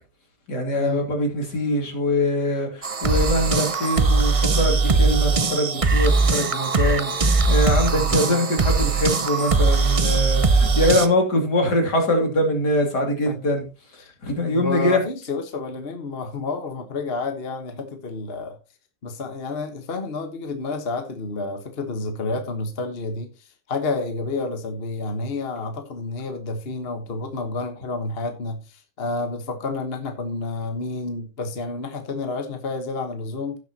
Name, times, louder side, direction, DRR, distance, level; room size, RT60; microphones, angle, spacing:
voice 1, 0.5-13.7 13.9-15.1, left 1 dB, 70° left, 3.2 m, -23 dB
sound 1, 2.8-11.1, right 4 dB, 55° right, 0.3 m, -20 dB
voice 2, 7.9-8.5 13.3-13.4 14.0-14.1 14.4-18.6 19.0-33.6, left 3 dB, 35° left, 1.4 m, -30 dB
17.0 x 6.4 x 2.9 m
omnidirectional pair, 1.8 m